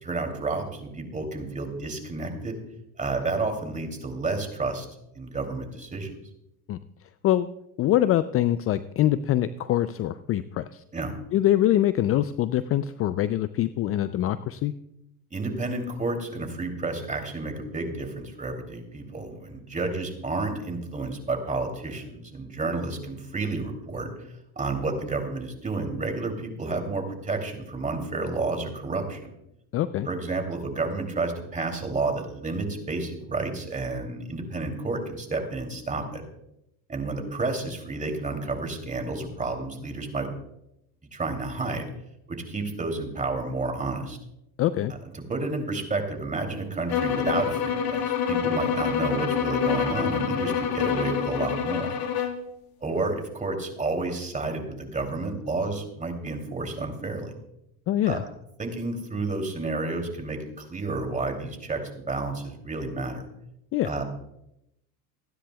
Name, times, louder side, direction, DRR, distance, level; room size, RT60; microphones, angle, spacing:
voice 1, 0.0-2.6 3.0-4.9 5.1-6.2 10.9-11.1 15.3-24.3 24.6-29.3 30.0-36.2 36.9-40.3 41.1-41.9 42.3-44.2 45.1-51.9 52.8-57.3 58.1-58.2 58.6-63.2 63.8-64.0, right 3 dB, 15° right, 4 dB, 2.9 m, -30 dB
voice 2, 7.8-10.8 11.3-14.7 29.7-30.1 44.6-44.9 57.9-58.2 63.7-63.9, left 12 dB, 30° left, 14 dB, 0.5 m, -24 dB
sound 1, 46.9-52.4, left 8 dB, 55° left, 1.9 m, -26 dB
29.5 x 10.0 x 2.3 m, 0.83 s
hypercardioid pair, 95°, 45 cm